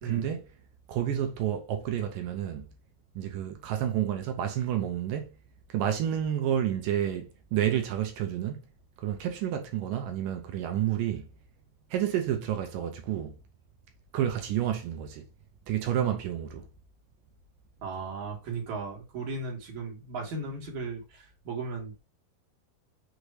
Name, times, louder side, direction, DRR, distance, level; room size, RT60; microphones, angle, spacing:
voice 1, 0.0-0.5 0.9-2.7 3.2-5.4 5.7-8.7 9.0-11.3 11.9-13.4 14.1-15.3 15.7-16.7, right 10 dB, 75° right, 2.1 m, -30 dB
voice 2, 17.8-22.0, right 3 dB, 55° right, 2.9 m, -36 dB
6.7 x 3.0 x 4.7 m
omnidirectional pair, 4.5 m